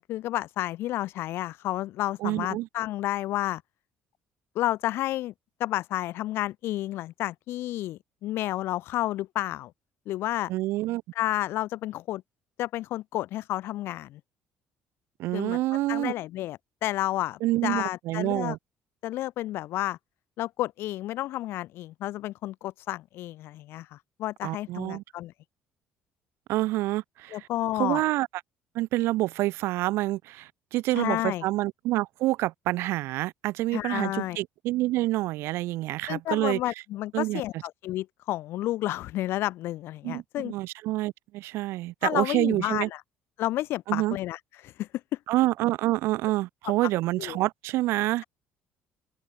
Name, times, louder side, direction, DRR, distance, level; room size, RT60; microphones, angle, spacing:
voice 1, 0.0-3.6 4.5-5.3 5.6-9.7 10.1-10.5 11.1-12.2 12.6-14.2 15.3-15.6 15.9-18.6 19.0-20.0 20.4-25.3 27.3-28.0 30.9-31.4 33.7-34.4 36.1-40.5 42.0-43.0 43.4-44.9 47.2-47.4, left 15 dB, 65° left, 1.4 m, -31 dB
voice 2, 2.2-2.7 10.5-11.0 15.2-16.1 17.4-18.6 24.4-25.0 26.5-27.5 27.8-28.3 28.7-36.6 37.1-37.4 40.0-42.9 43.9-44.2 45.3-48.2, right 17 dB, 75° right, 0.5 m, -27 dB
open air
cardioid pair, 145°, 4 cm